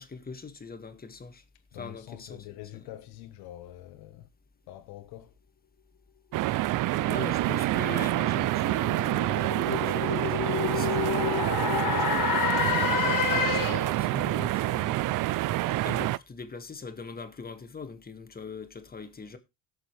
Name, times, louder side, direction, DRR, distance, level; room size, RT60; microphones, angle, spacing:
voice 1, 0.0-1.4 1.7-2.5 2.7-2.8 7.0-15.1 15.6-19.4, left 4 dB, 25° left, 1.8 m, -42 dB
voice 2, 1.7-4.3 4.7-5.3, left 13 dB, 85° left, 1.4 m, -45 dB
sound 1, 6.3-16.2, right 16 dB, 60° right, 0.5 m, -27 dB
sound 2, 7.9-14.0, left 8 dB, 60° left, 1.8 m, -29 dB
17.5 x 6.8 x 3.2 m
cardioid pair, 100°, 37 cm